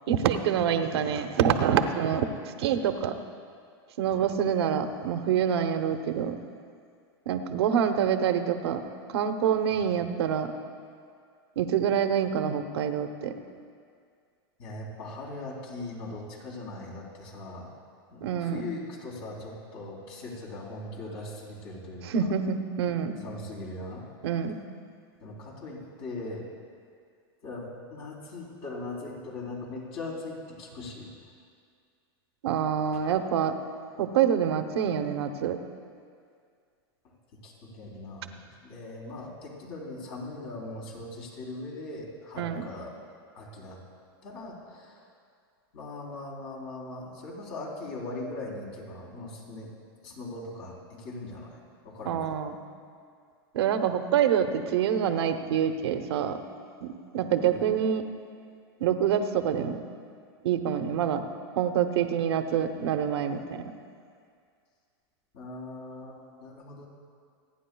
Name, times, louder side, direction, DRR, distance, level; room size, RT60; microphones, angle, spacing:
voice 1, 0.1-2.3 2.6-3.2 4.0-6.4 7.3-8.8 9.1-10.5 11.6-13.4 18.2-18.6 22.0-23.2 24.2-24.6 32.4-33.5 34.0-35.6 42.4-42.7 52.0-52.6 53.5-56.4 56.8-58.1 58.8-59.8 60.4-61.3 61.6-63.6, right 8 dB, 80° right, 7 dB, 0.9 m, -26 dB
voice 2, 14.6-17.7 18.1-22.3 23.2-24.1 25.2-26.4 27.4-31.1 37.0-38.4 38.6-42.9 43.3-43.8 44.2-45.0 45.7-49.7 50.0-51.6 51.8-52.4 57.4-57.6 65.3-66.9, left 2 dB, 60° left, -3 dB, 3.7 m, -40 dB
27.0 x 10.0 x 2.3 m, 2.2 s
supercardioid pair, 130°, 13 cm